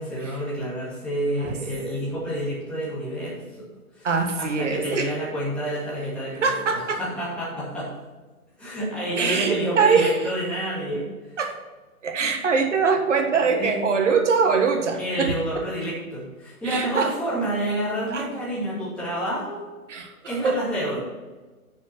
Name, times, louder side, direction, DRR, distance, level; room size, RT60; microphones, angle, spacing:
voice 1, 0.0-3.4 4.0-4.1 4.4-7.9 8.6-11.0 13.4-13.8 15.0-19.6 20.3-21.0, right 1 dB, ahead, -10 dB, 2.5 m, -29 dB
voice 2, 4.0-5.1 6.4-7.0 9.2-10.2 11.4-11.5 12.0-15.4 16.6-17.1 18.1-18.3 19.9-20.6, right 5 dB, 55° right, 5 dB, 1.6 m, -23 dB
8.4 x 6.4 x 6.1 m, 1.3 s
figure-of-eight pair, 135°, 44 cm